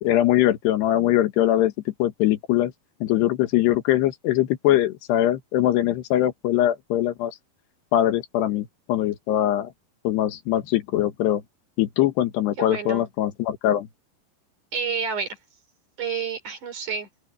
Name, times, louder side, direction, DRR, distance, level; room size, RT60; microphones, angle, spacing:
voice 1, 0.0-1.7 2.0-2.7 3.0-7.3 7.9-9.7 10.1-11.4 11.8-13.9, left 13 dB, 90° left, 3.6 m, -22 dB
voice 2, 12.6-13.1 14.7-15.4 16.0-17.1, right 6 dB, 50° right, 5.1 m, -29 dB
open air
omnidirectional pair, 4.6 m